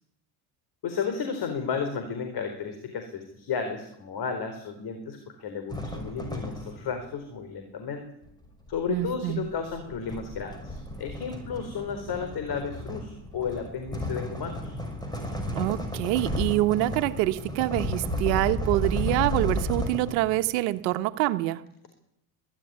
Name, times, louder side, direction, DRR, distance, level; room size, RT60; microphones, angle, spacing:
voice 1, 0.8-8.0 8.7-14.7, left 6 dB, 50° left, 7 dB, 4.3 m, -33 dB
sound 1, 5.7-7.0 8.2-20.5, equal, 10° left, 5.9 m, -33 dB
voice 2, 8.9-9.5 15.5-21.6, right 16 dB, 80° right, 10 dB, 1.4 m, -26 dB
22.0 x 13.0 x 9.6 m, 0.78 s
supercardioid pair, 90°, 50 cm